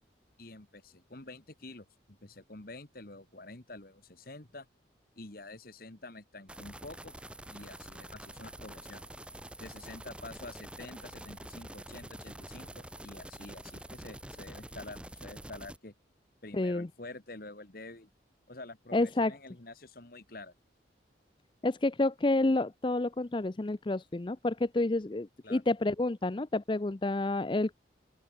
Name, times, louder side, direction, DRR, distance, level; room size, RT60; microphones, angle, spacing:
voice 1, 0.4-4.7 5.2-7.1 7.5-9.1 9.6-15.9 16.4-18.1 18.5-20.5 25.4-25.6, left 2 dB, 50° left, 1.9 m, -48 dB
sound 1, 6.5-15.8, right 1 dB, 5° right, 3.2 m, -46 dB
voice 2, 16.5-16.9 18.9-19.4 21.6-27.8, left 2 dB, 25° left, 0.5 m, -29 dB
open air
head